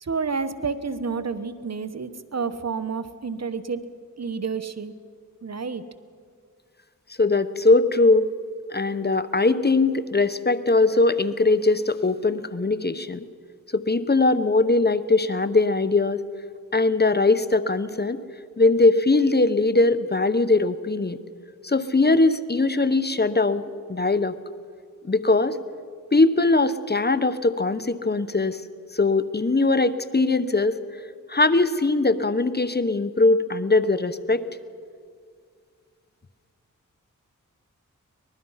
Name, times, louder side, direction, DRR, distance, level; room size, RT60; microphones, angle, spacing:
voice 1, 0.0-3.8 4.2-4.9 5.4-5.8, right 5 dB, 55° right, 12 dB, 1.1 m, -29 dB
voice 2, 7.2-8.3 8.7-13.2 13.7-16.2 16.7-18.2 18.6-21.2 21.6-23.6 23.9-24.3 25.0-25.6 26.1-28.6 28.9-30.8 31.3-34.4, left 3 dB, 30° left, 13 dB, 0.9 m, -21 dB
24.0 x 20.5 x 5.7 m, 2.1 s
cardioid pair, 50°, 32 cm